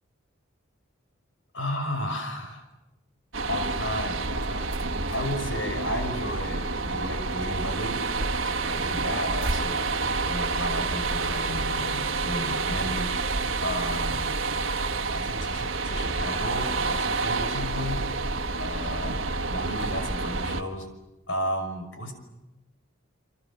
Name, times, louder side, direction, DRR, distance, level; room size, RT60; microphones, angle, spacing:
voice 1, 1.5-2.6 3.5-8.0 8.7-9.9 10.2-13.1 13.6-14.4 15.1-18.0 18.6-19.2 19.5-20.9 21.3-22.1, left 1 dB, 65° left, 6 dB, 5.9 m, -33 dB
sound 1, 3.3-20.6, right 3 dB, 70° right, 1.7 m, -28 dB
29.0 x 25.5 x 7.5 m, 0.97 s
head